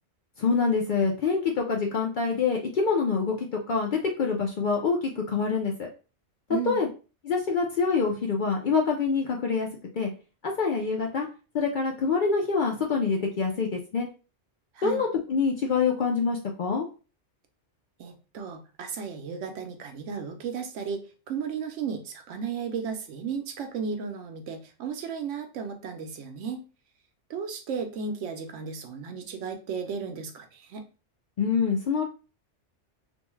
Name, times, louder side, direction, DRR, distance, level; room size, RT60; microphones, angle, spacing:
voice 1, 0.4-5.9 6.7-6.9 7.2-9.7 10.0-10.1 10.4-11.3 11.5-14.1 14.8-16.9 31.4-32.0, left 5 dB, 60° left, 1 dB, 0.5 m, -26 dB
voice 2, 6.5-6.8 14.8-15.0 18.0-26.6 27.3-30.9, right 6 dB, 85° right, 5 dB, 1.0 m, -34 dB
2.6 x 2.2 x 3.0 m, 0.34 s
omnidirectional pair, 1.2 m